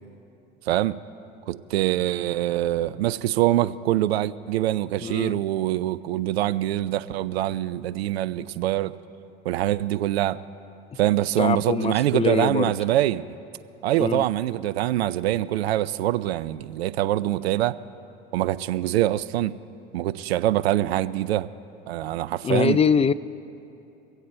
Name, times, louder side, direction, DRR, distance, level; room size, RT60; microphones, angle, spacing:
voice 1, 0.7-1.0 1.5-8.9 9.4-10.4 11.0-13.2 13.8-17.8 18.3-19.5 19.9-21.5 21.9-22.8, right 14 dB, 90° right, 17 dB, 0.5 m, -24 dB
voice 2, 5.0-5.4 11.4-12.7 14.0-14.2 22.4-23.1, left 6 dB, 20° left, 16 dB, 0.4 m, -23 dB
24.0 x 8.2 x 4.3 m, 2.8 s
hypercardioid pair, 75°, 31 cm